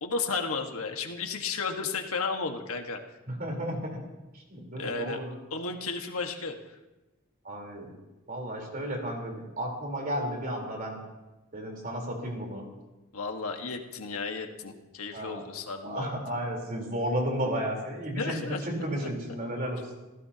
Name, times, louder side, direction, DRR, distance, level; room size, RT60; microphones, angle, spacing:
voice 1, 0.0-3.0 4.8-5.2 5.5-6.8 13.1-16.2 18.2-18.6, left 4 dB, 85° left, 4 dB, 1.6 m, -33 dB
voice 2, 3.3-4.0 4.3-5.3 7.4-7.9 8.3-11.0 11.5-12.6 15.1-15.4 15.8-19.8, equal, 40° right, 0 dB, 3.9 m, -33 dB
27.5 x 15.5 x 2.9 m, 1.1 s
head